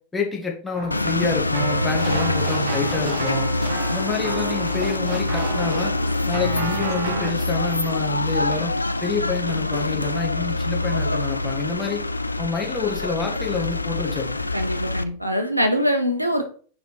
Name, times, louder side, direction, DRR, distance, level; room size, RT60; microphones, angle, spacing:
voice 1, 0.0-3.5 3.9-6.0 6.3-8.7 9.0-12.0 12.4-14.4, left 4 dB, 10° left, -1 dB, 1.8 m, -28 dB
Keyboard (musical), 0.7-7.3, right 4 dB, 55° right, 2.2 m, -32 dB
sound 1, 0.9-15.0, left 2 dB, 85° left, 0.3 m, -25 dB
sound 2, 1.9-7.6 7.9-8.0, right 4 dB, 35° right, 2.1 m, -39 dB
voice 2, 14.5-16.4, equal, 90° right, 6 dB, 0.9 m, -23 dB
5.4 x 4.3 x 4.9 m, 0.43 s
figure-of-eight pair, 90°, 0 cm